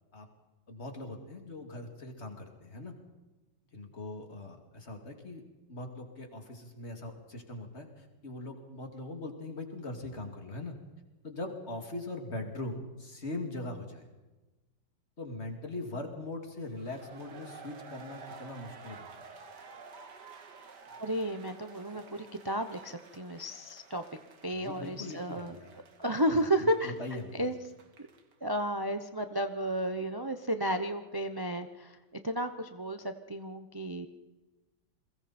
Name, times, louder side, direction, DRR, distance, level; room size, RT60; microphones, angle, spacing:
voice 1, 0.7-2.9 3.7-5.4 5.7-10.7 11.2-14.1 15.2-19.3 24.5-25.7 26.3-27.6, left 2 dB, 30° left, 3 dB, 2.9 m, -41 dB
sound 1, 16.7-28.3, right 4 dB, 55° right, 2.4 m, -52 dB
voice 2, 21.0-24.0 24.4-25.6 26.0-26.9 27.3-27.5 28.4-32.0 32.2-34.1, right 1 dB, 40° right, 8 dB, 0.3 m, -32 dB
30.0 x 22.0 x 4.4 m, 1.2 s
omnidirectional pair, 2.2 m